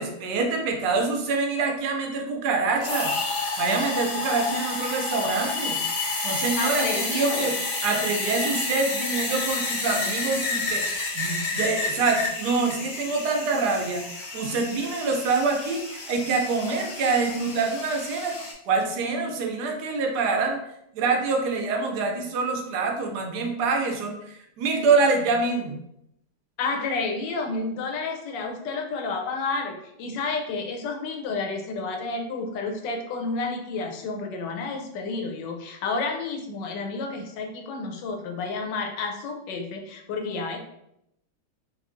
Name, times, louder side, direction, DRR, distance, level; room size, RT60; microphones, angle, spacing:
voice 1, 0.0-3.1 3.6-5.8 6.0-7.5 7.8-18.4 18.7-20.6 20.9-24.2 24.6-25.8, right 4 dB, 75° right, 3 dB, 1.1 m, -25 dB
sound 1, 2.8-18.5, left 3 dB, 70° left, 0.3 m, -30 dB
voice 2, 6.6-7.5 26.6-40.6, left 3 dB, 85° left, 4 dB, 1.3 m, -30 dB
3.5 x 3.0 x 2.5 m, 0.80 s
omnidirectional pair, 1.9 m